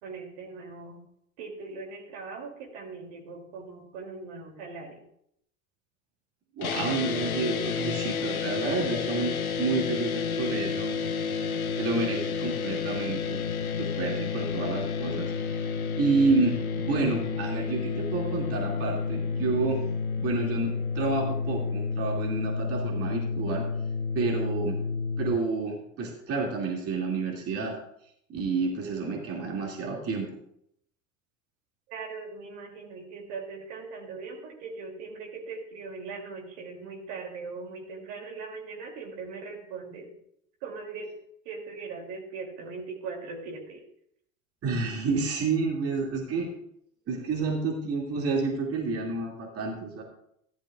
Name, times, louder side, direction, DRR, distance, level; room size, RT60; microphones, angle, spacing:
voice 1, 0.0-1.0 1.4-5.0 31.9-40.1 40.6-41.1 41.4-43.8, right 4 dB, 55° right, 1 dB, 2.9 m, -40 dB
sound 1, 6.6-25.4, left 5 dB, 85° left, 0.8 m, -30 dB
voice 2, 6.6-11.0 11.8-13.4 13.8-15.7 16.0-19.8 20.2-23.7 24.1-24.8 25.2-27.8 28.3-30.4 44.6-46.5 47.1-50.0, right 4 dB, 35° right, -1 dB, 2.5 m, -29 dB
14.5 x 12.0 x 2.4 m, 0.71 s
figure-of-eight pair, 80°, 41 cm